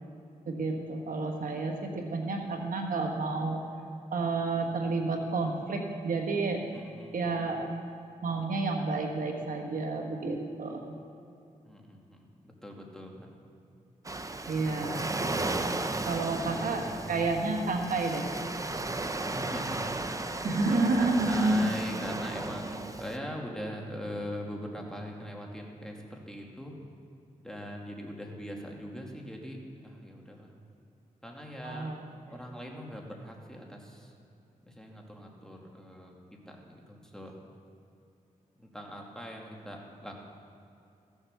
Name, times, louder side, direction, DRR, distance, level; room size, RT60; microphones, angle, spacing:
voice 1, 0.5-3.6 4.1-6.6 7.1-7.6 8.2-10.9 14.5-15.1 15.4-15.5 16.1-18.3 20.4-21.7 31.6-32.0, right 3 dB, 70° right, 2 dB, 1.4 m, -30 dB
voice 2, 6.7-7.5 11.6-13.3 14.8-15.0 16.4-17.3 19.3-20.0 20.2-26.7 27.4-30.5 31.2-32.0 32.3-34.1 34.6-36.2 36.5-37.4 38.6-40.1, equal, 5° left, 0 dB, 2.5 m, -42 dB
Waves surf, 14.0-23.2, right 2 dB, 25° right, 0.8 m, -35 dB
15.0 x 7.1 x 6.8 m, 2.7 s
cardioid pair, 60°, 14 cm